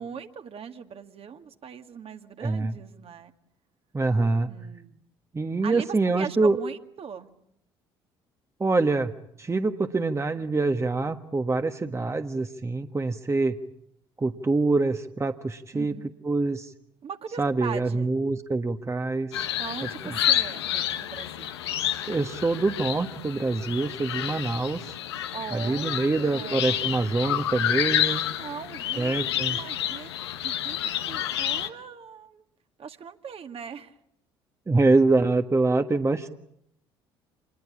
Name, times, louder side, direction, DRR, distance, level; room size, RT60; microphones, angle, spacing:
voice 1, 0.0-3.3 4.5-5.0 5.6-7.3 15.7-16.1 17.0-18.1 19.6-21.5 25.3-26.7 28.4-29.1 29.5-30.1 30.4-32.4 32.8-34.0, right 7 dB, 45° right, 6 dB, 2.1 m, -40 dB
voice 2, 2.4-2.7 3.9-4.5 5.3-6.6 8.6-9.1 9.4-13.6 14.2-15.9 16.2-16.7 17.4-19.5 20.0-20.1 22.1-24.9 25.5-28.2 29.0-29.6 34.7-36.3, right 3 dB, 20° right, 7 dB, 1.5 m, -25 dB
sound 1, 19.3-31.7, left 11 dB, 80° left, 1.3 m, -29 dB
27.5 x 21.5 x 8.6 m, 0.75 s
hypercardioid pair, 55°, 13 cm